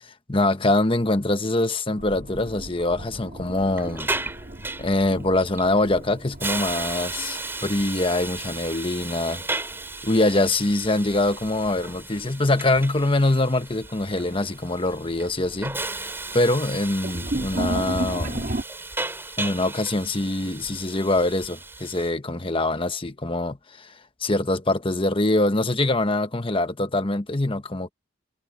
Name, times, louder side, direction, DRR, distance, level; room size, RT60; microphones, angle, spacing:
voice 1, 0.3-4.1 4.8-9.4 10.0-15.8 16.3-18.5 19.4-23.9 24.2-27.9, left 2 dB, 25° left, 1.2 m, -24 dB
sound 1, 2.0-8.8 9.1-10.0 11.7-12.0 12.5-12.6 13.6-13.7 14.1-14.5 14.9-18.6, right 2 dB, 45° right, 1.9 m, -34 dB
Hiss, 3.5-22.1, right 2 dB, 10° right, 4.0 m, -35 dB
head